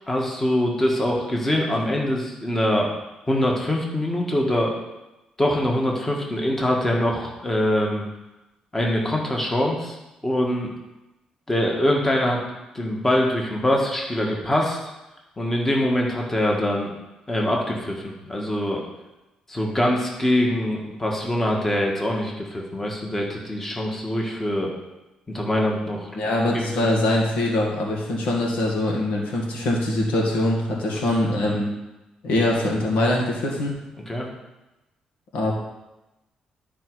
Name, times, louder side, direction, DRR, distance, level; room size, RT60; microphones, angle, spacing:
voice 1, 0.1-2.9 3.3-4.7 5.4-8.1 8.7-10.0 10.2-10.7 11.5-12.4 12.7-14.8 15.4-16.9 17.3-18.8 19.5-24.7 25.3-26.1 26.8-26.9 30.9-31.2 34.1-34.3, left 1 dB, 15° left, -1 dB, 1.6 m, -23 dB
voice 2, 26.1-31.7 32.2-33.7 35.3-35.5, left 1 dB, 90° left, -1 dB, 2.2 m, -23 dB
12.0 x 5.1 x 4.8 m, 1.0 s
cardioid pair, 115°, 2 cm